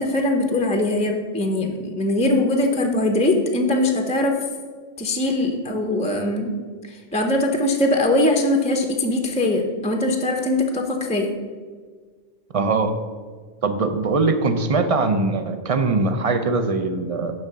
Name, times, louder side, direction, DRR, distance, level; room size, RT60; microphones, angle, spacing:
voice 1, 0.0-4.4 5.0-6.6 6.9-11.3, left 1 dB, 10° left, 3 dB, 0.5 m, -21 dB
voice 2, 12.5-12.9 13.6-17.3, right 3 dB, 40° right, 8 dB, 0.5 m, -21 dB
9.9 x 3.6 x 6.7 m, 1.5 s
omnidirectional pair, 1.2 m